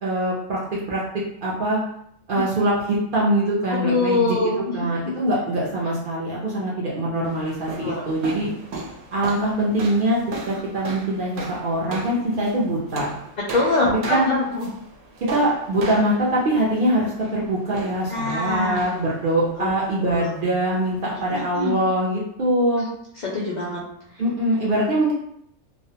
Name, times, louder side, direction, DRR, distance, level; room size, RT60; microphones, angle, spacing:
voice 1, 0.0-1.8 2.3-4.4 4.7-8.5 9.1-10.2 10.5-13.1 13.8-14.3 15.3-22.9 24.2-25.1, right 1 dB, 60° right, -5 dB, 0.6 m, -23 dB
voice 2, 3.8-5.2 7.8-8.1 13.5-14.7 18.1-18.9 19.6-19.7 20.0-20.3 21.3-21.7 23.3-23.8, left 3 dB, 90° left, -4 dB, 0.3 m, -24 dB
sound 1, 7.2-21.5, right 2 dB, 75° right, 0.9 m, -37 dB
2.4 x 2.1 x 2.7 m, 0.74 s
omnidirectional pair, 1.3 m